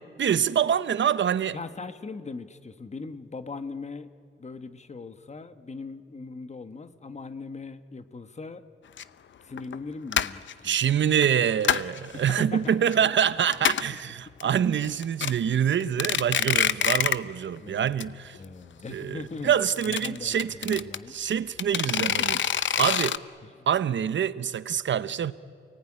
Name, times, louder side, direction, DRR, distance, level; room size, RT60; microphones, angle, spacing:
voice 1, 0.2-1.6 10.6-18.4 18.9-22.4 22.8-23.2 23.7-25.3, right 8 dB, 80° right, 0.8 m, -25 dB
voice 2, 1.5-4.1 4.4-8.6 9.4-10.8 12.1-12.9 17.6-19.5 19.8-21.1 21.7-22.4 22.9-23.0 23.4-23.7, left 4 dB, 35° left, 1.3 m, -40 dB
sound 1, 9.0-9.1 9.6-9.8 10.1-10.5 11.2-12.0 12.4-12.9 13.2-13.3 13.5-14.0 14.4-14.5 14.8-15.3 15.8-17.3 17.6-17.7 18.0-18.1 18.3-18.4 19.5-21.0 21.6-23.2, left 9 dB, 80° left, 0.7 m, -26 dB
29.0 x 19.0 x 10.0 m
wide cardioid pair, 120°, 19 cm